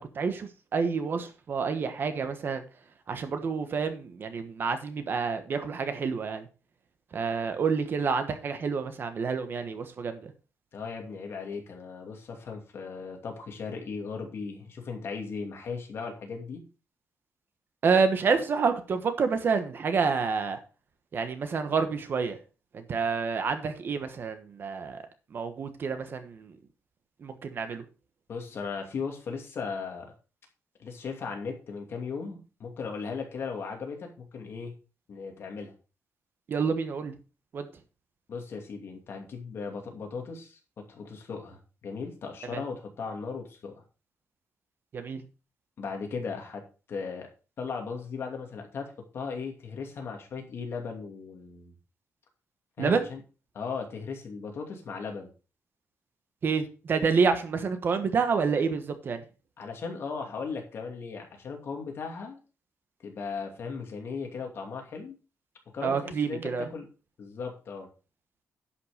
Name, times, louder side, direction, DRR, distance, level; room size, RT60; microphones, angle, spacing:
voice 1, 0.0-2.6 3.1-6.5 7.1-10.3 17.8-20.6 21.1-22.4 22.7-25.0 25.3-26.6 27.2-27.8 36.5-37.1 37.5-37.7 42.5-42.6 44.9-45.2 52.8-53.1 56.4-59.2 65.8-66.7, right 5 dB, 40° right, 1.2 m, -28 dB
voice 2, 10.7-16.6 28.3-30.1 30.8-34.7 35.1-35.7 38.3-43.8 45.8-46.6 46.9-47.3 47.6-51.7 52.8-53.2 53.5-55.3 59.6-62.4 63.0-65.2 65.7-66.9 67.2-67.9, left 5 dB, 50° left, 2.5 m, -37 dB
11.0 x 5.8 x 4.9 m
wide cardioid pair, 175°, 5 cm